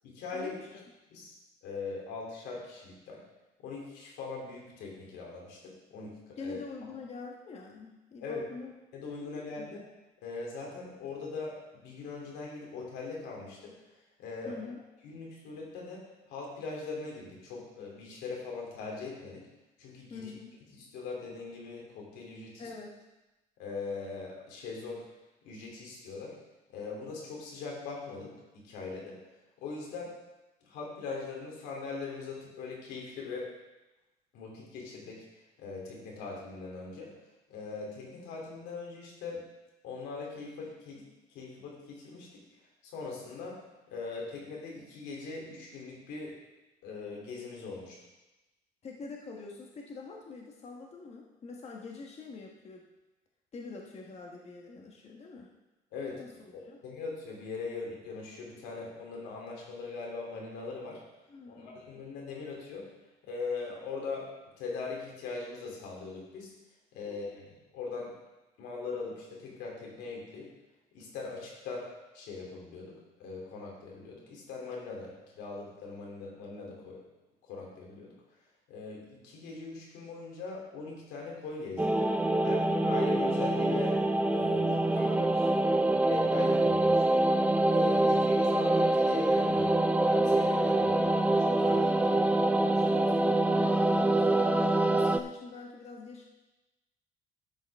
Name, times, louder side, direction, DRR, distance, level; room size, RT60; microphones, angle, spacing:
voice 1, 0.0-0.6 1.1-1.3 1.6-3.2 3.6-6.6 8.2-8.5 8.9-9.8 10.2-13.7 14.2-14.6 15.0-19.5 19.8-20.3 20.9-22.7 23.6-25.0 25.4-26.3 26.7-29.2 29.6-30.1 30.6-33.5 34.3-35.2 35.6-37.1 37.5-39.4 39.8-42.4 42.8-43.6 43.9-46.4 46.8-48.0 55.9-56.2 56.8-61.0 61.5-62.9 63.2-64.3 64.6-66.5 66.9-68.1 68.6-70.5 70.9-71.9 72.1-77.0 77.4-78.2 78.7-82.0 82.4-84.0 84.3-85.3 86.1-87.3 87.7-91.8, left 4 dB, 90° left, -2 dB, 3.0 m, -41 dB
voice 2, 6.4-8.7 9.2-9.7 14.4-14.8 20.1-20.6 22.6-23.0 48.8-52.8 53.5-55.5 56.2-56.3 56.7-56.8 61.3-61.8 67.0-67.4 84.6-85.9 91.6-96.3, left 4 dB, 40° left, 0 dB, 1.3 m, -45 dB
sound 1, 81.8-95.2, right 2 dB, 10° right, 0.5 m, -25 dB
12.0 x 7.9 x 3.5 m, 1.0 s
cardioid pair, 110°, 17 cm